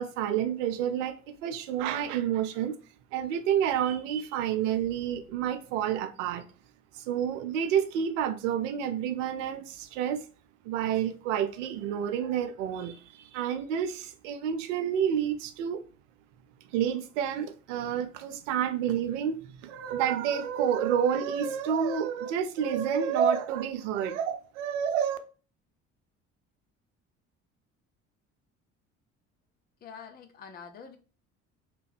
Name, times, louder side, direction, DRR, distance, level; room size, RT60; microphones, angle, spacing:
voice 1, 0.0-2.8 3.1-6.5 6.9-10.3 10.6-15.8 16.7-25.2, right 8 dB, 75° right, 0.5 m, -29 dB
voice 2, 29.8-31.0, left 6 dB, 25° left, 0.5 m, -46 dB
2.9 x 2.2 x 3.3 m
hypercardioid pair, 55°, 37 cm